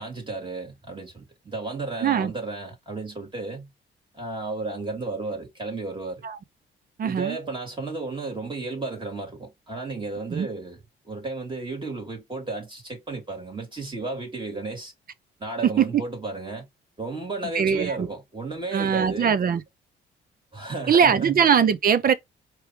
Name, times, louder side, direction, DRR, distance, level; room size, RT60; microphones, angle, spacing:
voice 1, 0.0-3.7 4.1-6.2 7.0-10.8 11.0-14.9 15.4-16.6 17.0-19.3 20.5-21.4, right 3 dB, 25° right, 3.4 m, -33 dB
voice 2, 2.0-2.3 6.2-6.4 7.0-7.4 10.3-10.5 15.6-16.0 17.5-18.1 18.7-19.6 20.9-22.1, right 7 dB, 45° right, 0.7 m, -21 dB
4.7 x 3.2 x 3.3 m
cardioid pair, 90°, 20 cm